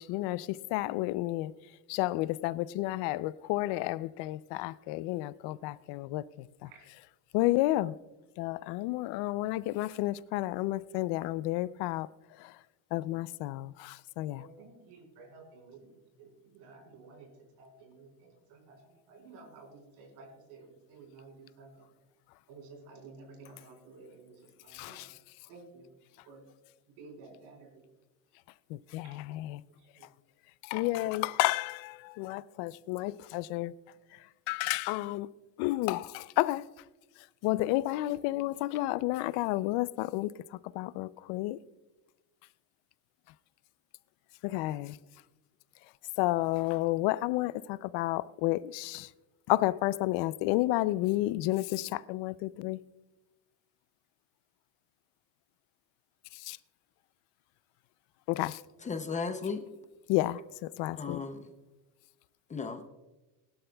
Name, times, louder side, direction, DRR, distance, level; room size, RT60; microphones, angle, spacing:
voice 1, 0.0-1.5 1.9-6.2 7.3-7.9 8.4-12.1 12.9-14.4 24.8-25.1 28.9-29.6 30.7-33.7 34.5-35.3 35.6-36.6 37.4-40.3 40.8-41.6 44.4-44.9 46.2-49.1 49.5-52.8 56.5-56.6 58.3-58.6 60.1-60.4 60.8-61.2, left 17 dB, 70° left, 0.6 m, -31 dB
voice 2, 14.3-21.9 22.5-25.1 25.5-25.9 26.2-26.5 26.9-27.9 29.0-29.2 30.0-30.1 31.0-31.1, right 3 dB, 80° right, 3.8 m, -53 dB
voice 3, 58.8-59.7 61.0-61.5 62.5-62.9, left 5 dB, 15° left, 0.6 m, -35 dB
21.0 x 12.0 x 2.3 m
cardioid pair, 155°, 41 cm